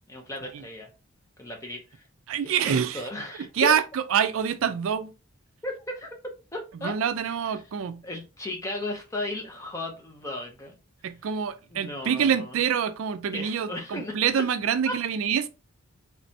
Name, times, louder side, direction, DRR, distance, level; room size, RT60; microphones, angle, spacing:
voice 1, 0.1-0.9 1.4-2.0 2.4-3.7 5.6-6.2 6.5-7.0 8.0-10.7 11.7-12.6 13.3-14.1 14.9-15.0, left 1 dB, 15° left, 0.6 m, -35 dB
voice 2, 2.3-3.1 3.5-5.1 6.8-8.0 11.0-15.5, right 8 dB, 65° right, 0.3 m, -26 dB
3.3 x 3.1 x 2.7 m
head